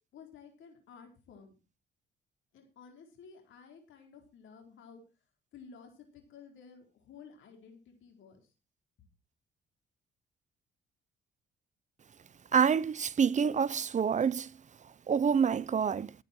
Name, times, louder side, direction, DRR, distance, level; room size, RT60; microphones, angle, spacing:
voice 1, 0.1-1.5 2.5-5.0 5.5-8.5, left 6 dB, 75° left, 4.3 m, -53 dB
voice 2, 12.5-14.5 15.1-16.1, right 7 dB, 35° right, 0.7 m, -27 dB
15.0 x 9.7 x 4.5 m
cardioid pair, 90°, 20 cm